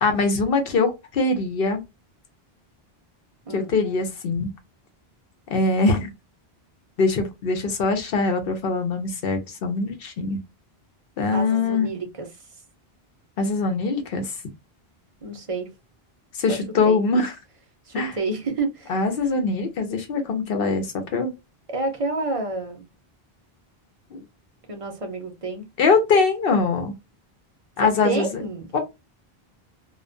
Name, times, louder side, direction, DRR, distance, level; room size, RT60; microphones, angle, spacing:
voice 1, 0.0-1.8 3.5-4.5 5.5-6.1 7.0-10.4 11.2-11.9 13.4-14.3 16.4-17.3 17.9-18.1 18.9-21.3 24.1-24.2 25.8-26.9 27.8-28.4 28.7-28.8, left 3 dB, 65° left, 0.8 m, -22 dB
voice 2, 11.3-12.3 15.2-15.7 16.5-16.6 16.8-17.0 17.9-19.0 21.7-22.8 24.7-25.6 27.8-28.7, right 3 dB, 40° right, 0.6 m, -29 dB
2.2 x 2.2 x 2.5 m
omnidirectional pair, 1.0 m